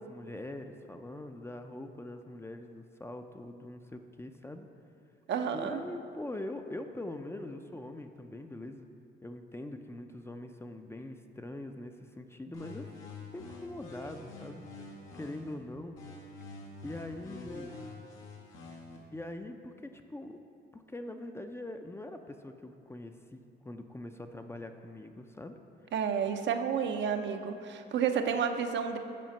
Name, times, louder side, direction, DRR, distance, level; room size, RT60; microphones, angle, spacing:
voice 1, 0.0-4.7 5.5-8.9 9.2-13.0 13.3-14.6 15.1-16.0 16.8-17.8 19.1-20.4 20.7-25.6, left 1 dB, 10° left, 6 dB, 0.4 m, -43 dB
voice 2, 5.3-5.8 25.9-29.0, right 7 dB, 65° right, 6 dB, 0.6 m, -30 dB
sound 1, 12.5-15.5 16.0-19.0, left 2 dB, 85° left, 1.3 m, -46 dB
7.6 x 5.0 x 5.4 m, 2.6 s
cardioid pair, 90°, 20 cm